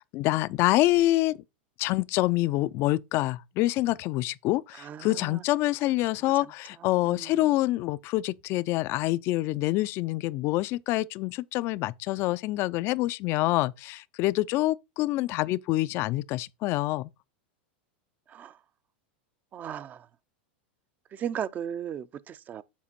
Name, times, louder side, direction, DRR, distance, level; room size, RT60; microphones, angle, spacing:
voice 1, 0.1-1.4 1.8-17.1, left 17 dB, 45° left, 0.3 m, -26 dB
voice 2, 4.8-5.4 7.0-7.3 18.3-18.5 19.5-20.1 21.1-22.6, right 9 dB, 30° right, 0.4 m, -36 dB
7.3 x 4.5 x 4.2 m
hypercardioid pair, 120°, 6 cm